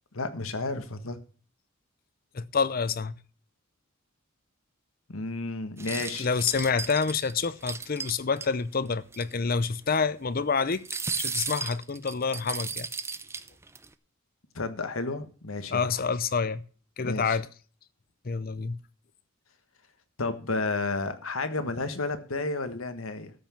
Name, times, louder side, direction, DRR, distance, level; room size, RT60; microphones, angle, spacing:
voice 1, 0.1-1.2 5.1-6.3 14.5-15.9 17.0-17.4 20.2-23.3, left 3 dB, 85° left, 1.5 m, -32 dB
voice 2, 2.3-3.1 6.2-10.8 11.2-12.9 15.7-16.6 17.0-17.5 18.2-18.8, left 5 dB, 45° left, 0.7 m, -28 dB
sound 1, 5.8-8.5 8.9-9.0 9.1-9.3 10.7-13.9, right 4 dB, 15° right, 0.5 m, -35 dB
13.5 x 5.9 x 7.3 m
head